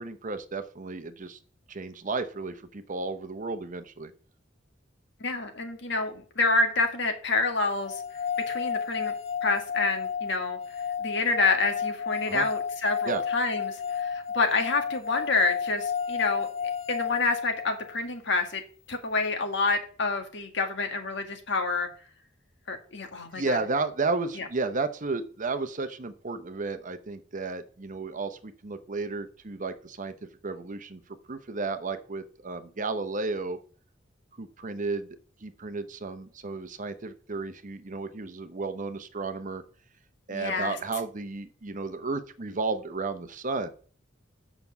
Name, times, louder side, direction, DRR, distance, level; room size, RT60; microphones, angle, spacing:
voice 1, 0.0-1.4 1.7-4.1 12.3-12.5 13.0-13.2 23.3-30.1 30.4-31.0 31.3-33.6 34.4-35.2 35.4-39.6 40.3-43.7, right 3 dB, 45° right, 10 dB, 0.8 m, -33 dB
voice 2, 5.2-8.0 8.5-9.1 9.4-10.6 11.0-16.5 16.9-18.6 18.9-21.9 22.7-23.6 24.4-24.5 40.3-40.8, left 3 dB, 65° left, 5 dB, 1.8 m, -28 dB
sound 1, 7.8-18.0, left 7 dB, 35° left, 0.7 m, -32 dB
7.6 x 6.0 x 6.9 m, 0.43 s
head